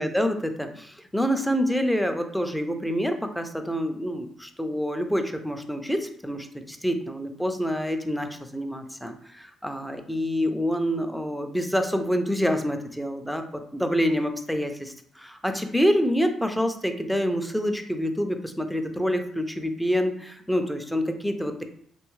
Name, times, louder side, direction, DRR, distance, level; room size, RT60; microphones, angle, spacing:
voice 1, 0.0-13.4 13.7-21.6, equal, ahead, 6 dB, 0.4 m, -27 dB
3.1 x 2.2 x 3.1 m, 0.63 s
cardioid pair, 90°, 0 cm